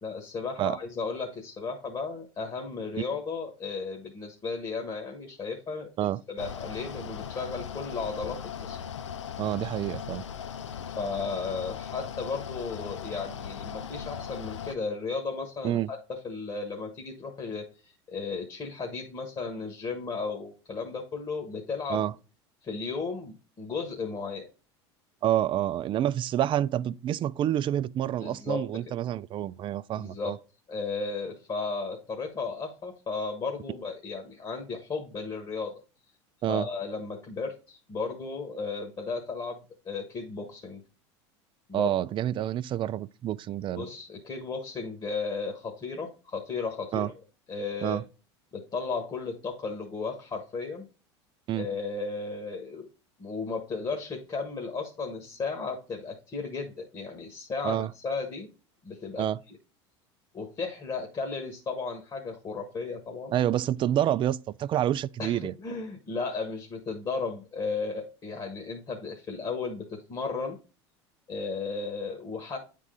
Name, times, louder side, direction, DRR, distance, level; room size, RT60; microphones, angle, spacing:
voice 1, 0.0-8.8 10.8-22.0 22.6-24.5 28.2-28.9 30.0-30.4 30.7-35.7 36.5-40.8 41.7-41.9 43.8-47.1 47.5-48.0 48.5-50.9 51.5-52.9 53.2-58.5 58.8-59.6 60.3-63.4 65.2-70.6 71.3-72.6, left 4 dB, 30° left, 1.5 m, -35 dB
Mechanical fan, 6.4-14.8, left 8 dB, 90° left, 0.5 m, -38 dB
voice 2, 9.4-10.2 15.6-15.9 21.9-22.1 25.2-30.4 36.4-36.7 41.7-43.8 46.9-47.1 47.8-48.0 51.5-51.7 57.6-57.9 59.2-59.4 63.3-65.5, right 11 dB, 35° right, 0.4 m, -28 dB
9.4 x 3.7 x 3.8 m
hypercardioid pair, 85°, 15 cm